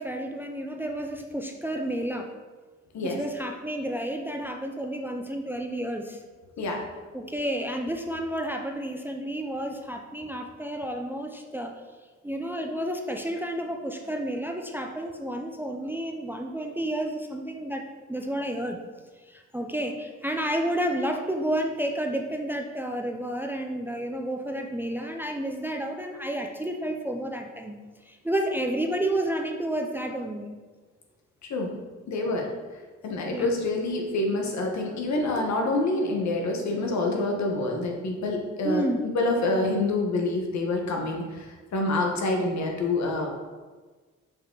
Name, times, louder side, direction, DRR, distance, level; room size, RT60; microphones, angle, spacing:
voice 1, 0.0-2.3 3.0-6.2 7.1-11.7 12.2-18.8 19.2-30.6 33.3-33.5 38.6-39.1, right 1 dB, 5° right, 3 dB, 0.5 m, -31 dB
voice 2, 31.4-31.7 32.1-32.5 33.0-38.8 39.1-43.4, left 2 dB, 65° left, 1 dB, 1.4 m, -27 dB
5.9 x 5.1 x 3.9 m, 1.4 s
cardioid pair, 90°, 30 cm